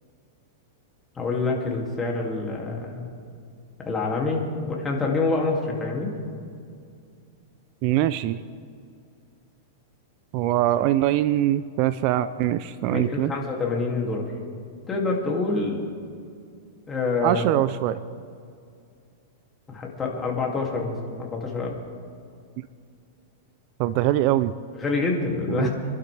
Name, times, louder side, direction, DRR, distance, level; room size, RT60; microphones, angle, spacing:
voice 1, 1.2-3.1 3.8-6.1 12.8-14.3 14.9-15.9 16.9-17.4 19.7-21.8 24.7-25.7, left 3 dB, 15° left, -1 dB, 2.5 m, -26 dB
voice 2, 7.8-8.4 10.3-13.3 17.2-18.0 23.8-24.5 25.5-25.7, right 13 dB, 45° right, 15 dB, 0.4 m, -23 dB
26.5 x 12.0 x 3.4 m, 2.3 s
supercardioid pair, 140°, 0 cm